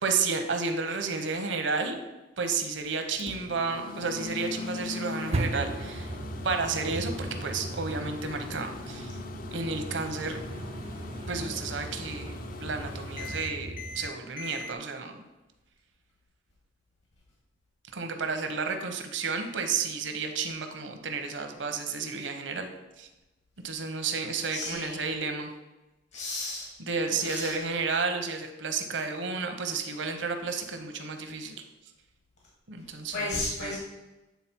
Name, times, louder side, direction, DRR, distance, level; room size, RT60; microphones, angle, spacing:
voice 1, 0.0-1.9 2.4-6.1 6.4-9.1 9.5-10.4 11.3-15.2 17.9-22.7 23.0-23.1 23.6-25.5 26.9-31.5 32.7-33.1 33.6-33.8, right 4 dB, 75° right, 6 dB, 0.8 m, -31 dB
Microwave oven, 3.2-14.7, left 3 dB, 50° left, 0.4 m, -41 dB
sound 1, 5.3-14.1, right 2 dB, 35° right, 0.4 m, -37 dB
voice 2, 24.5-25.1 26.1-26.7 27.1-27.6 32.8-33.8, left 2 dB, 75° left, -4 dB, 1.7 m, -34 dB
8.3 x 3.9 x 4.5 m, 1.0 s
head